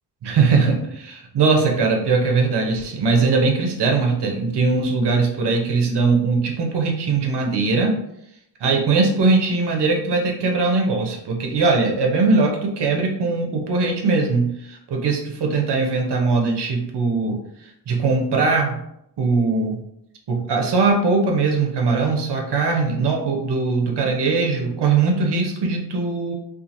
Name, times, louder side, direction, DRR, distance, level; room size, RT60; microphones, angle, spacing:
voice 1, 0.2-8.0 8.6-17.4 17.9-18.8 19.2-19.8 20.3-26.3, right 4 dB, 75° right, 1 dB, 0.7 m, -20 dB
2.8 x 2.5 x 2.5 m, 0.77 s
wide cardioid pair, 110°, 41 cm